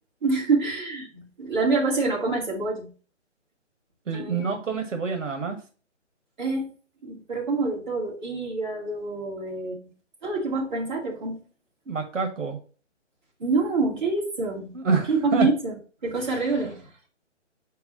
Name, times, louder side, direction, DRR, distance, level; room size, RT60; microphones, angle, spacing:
voice 1, 0.2-2.9 4.1-4.5 6.4-6.7 7.0-9.8 10.2-11.4 13.4-14.7 15.1-15.7 16.0-16.9, right 3 dB, 40° right, -3 dB, 2.4 m, -26 dB
voice 2, 4.1-5.6 11.8-12.6 14.7-15.5, right 5 dB, 85° right, 4 dB, 1.5 m, -27 dB
4.7 x 4.5 x 5.5 m, 0.38 s
hypercardioid pair, 175°, 37 cm